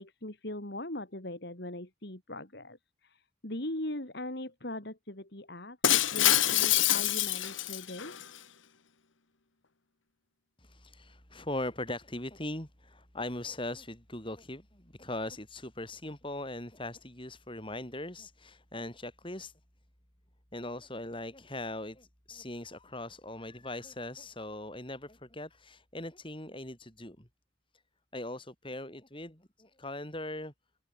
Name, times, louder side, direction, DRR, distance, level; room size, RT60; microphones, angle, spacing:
voice 1, 0.0-8.2, left 1 dB, 55° left, 3.3 m, -40 dB
Shatter, 5.8-8.2, left 12 dB, 75° left, 1.6 m, -26 dB
voice 2, 10.6-19.5 20.5-27.3 28.1-30.5, left 1 dB, 25° left, 6.5 m, -40 dB
head